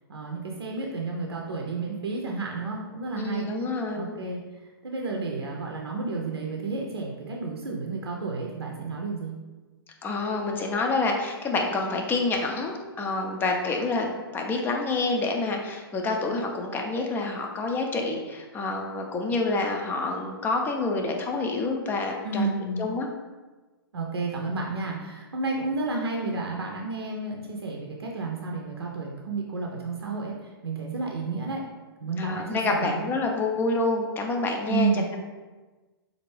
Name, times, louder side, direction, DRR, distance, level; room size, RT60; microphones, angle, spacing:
voice 1, 0.1-3.5 3.9-4.4 4.8-9.3 22.2-22.9 23.9-31.6 32.0-33.0 34.7-35.0, right 3 dB, 80° right, 0 dB, 0.6 m, -31 dB
voice 2, 3.1-4.1 10.0-22.5 22.8-23.1 32.2-34.9, left 3 dB, 15° left, 2 dB, 0.5 m, -28 dB
4.3 x 2.5 x 3.2 m, 1.2 s
figure-of-eight pair, 115°, 13 cm